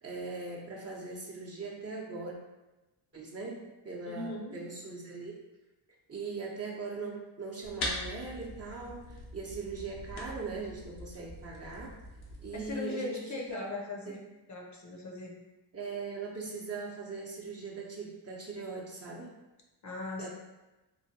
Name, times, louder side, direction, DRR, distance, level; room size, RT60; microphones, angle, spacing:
voice 1, 0.0-2.4 3.1-5.3 6.1-11.9 12.4-13.2 13.5-13.6 14.1-14.2 15.7-19.3 20.2-20.3, right 4 dB, 30° right, -3 dB, 0.8 m, -40 dB
voice 2, 4.1-4.7 12.5-14.2 14.5-15.4 19.8-20.3, left 3 dB, 35° left, 0 dB, 0.7 m, -39 dB
sound 1, 7.6-12.7, left 1 dB, 85° left, 0.8 m, -42 dB
3.2 x 2.2 x 2.8 m, 1.1 s
supercardioid pair, 55°, 48 cm